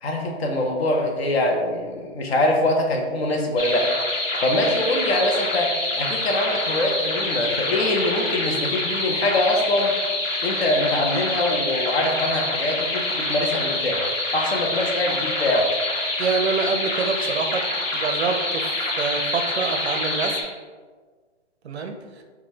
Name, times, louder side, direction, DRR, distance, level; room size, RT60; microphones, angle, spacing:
voice 1, 0.0-3.9 4.4-9.9 10.4-14.0 14.3-15.7, left 1 dB, 55° left, 1 dB, 0.7 m, -23 dB
sound 1, 3.6-20.4, left 2 dB, 85° left, 1.1 m, -26 dB
voice 2, 16.2-17.7 17.9-20.4 21.6-22.2, right 4 dB, 60° right, 5 dB, 0.5 m, -26 dB
4.8 x 2.3 x 2.8 m, 1.5 s
hypercardioid pair, 170°, 37 cm